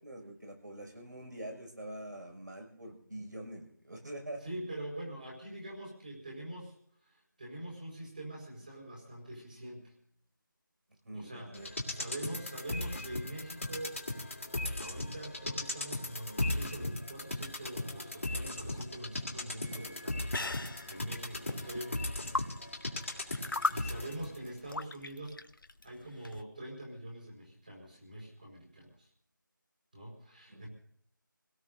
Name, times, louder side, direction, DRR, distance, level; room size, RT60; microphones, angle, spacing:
voice 1, 0.0-4.4 11.0-11.7 30.5-30.7, right 1 dB, 60° right, 2 dB, 5.7 m, -45 dB
voice 2, 4.4-6.7 7.0-9.9 11.1-14.0 14.7-20.5 20.8-22.3 23.1-25.4 25.8-29.1 29.9-30.7, right 1 dB, 25° right, -2 dB, 4.5 m, -44 dB
sound 1, 11.5-24.4 24.7-24.8, left 2 dB, 35° left, 1.8 m, -38 dB
sound 2, 18.7-26.4, left 3 dB, 75° left, 0.9 m, -39 dB
27.0 x 17.5 x 2.6 m, 0.62 s
figure-of-eight pair, 180°, 11 cm